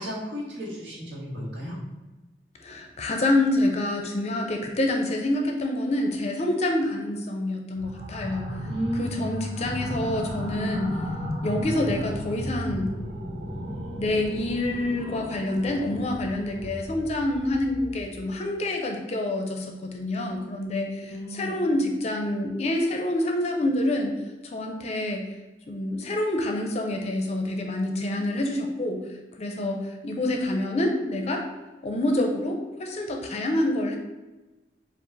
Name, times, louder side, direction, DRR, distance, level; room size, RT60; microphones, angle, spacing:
voice 1, 0.0-1.8 8.5-9.1 21.0-21.5, equal, 80° right, -4 dB, 1.5 m, -33 dB
voice 2, 2.6-8.5 8.9-11.0 11.4-12.9 14.0-25.3 25.7-29.1 29.4-31.4 31.8-34.0, left 1 dB, 35° left, 3 dB, 0.5 m, -27 dB
sound 1, 7.8-18.3, equal, 30° right, 1.4 m, -34 dB
4.7 x 2.4 x 3.9 m, 1.1 s
head